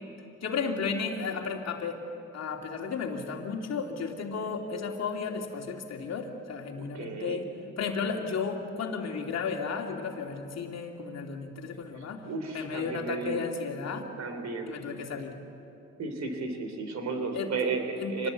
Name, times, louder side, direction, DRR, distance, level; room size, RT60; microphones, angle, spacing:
voice 1, 0.4-2.0 2.3-7.5 7.8-12.2 12.5-14.1 14.7-15.3 17.3-17.5 18.0-18.3, left 5 dB, 60° left, 2 dB, 2.9 m, -33 dB
voice 2, 6.9-7.4 12.2-13.4 14.2-14.7 16.0-18.3, right 4 dB, 65° right, 6 dB, 3.5 m, -33 dB
25.5 x 19.5 x 8.4 m, 2.7 s
cardioid pair, 90°, 30 cm